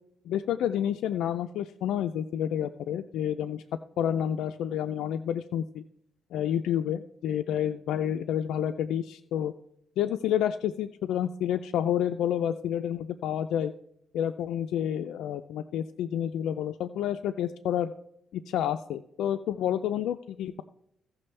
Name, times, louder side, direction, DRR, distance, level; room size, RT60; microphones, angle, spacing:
voice 1, 0.3-3.6 4.0-5.8 6.3-9.5 10.0-13.7 14.1-17.9 18.3-20.6, left 10 dB, 90° left, 7 dB, 0.4 m, -29 dB
16.5 x 6.0 x 3.3 m, 0.75 s
cardioid pair, 100°, 0 cm